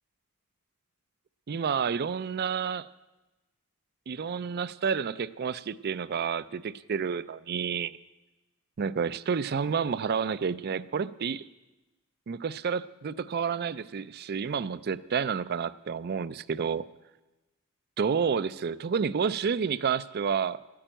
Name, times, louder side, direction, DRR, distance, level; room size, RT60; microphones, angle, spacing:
voice 1, 1.5-2.9 4.1-8.0 8.8-11.5 12.3-16.8 18.0-20.6, right 6 dB, 45° right, 16 dB, 0.4 m, -30 dB
12.5 x 8.6 x 8.9 m, 1.1 s
head